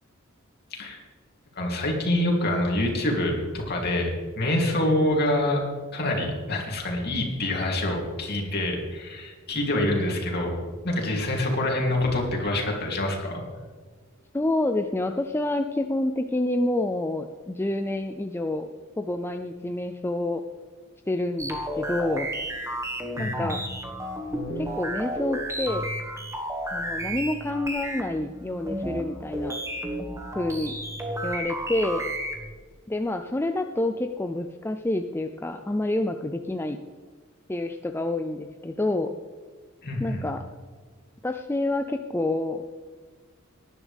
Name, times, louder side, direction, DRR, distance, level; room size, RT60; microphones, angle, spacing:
voice 1, 0.7-1.0 1.5-5.6 5.9-10.5 10.8-13.4 23.2-23.5 39.8-40.2, left 1 dB, 50° left, 0 dB, 3.0 m, -26 dB
voice 2, 14.3-20.4 21.1-22.3 23.2-23.7 24.6-25.9 26.7-29.6 30.4-30.8 31.2-32.0 32.9-36.8 37.5-39.1 40.0-40.5 41.2-42.6, left 1 dB, 10° left, 6 dB, 0.4 m, -28 dB
sound 1, 21.4-32.5, right 1 dB, 15° right, 1.5 m, -32 dB
18.5 x 11.0 x 3.5 m, 1.5 s
head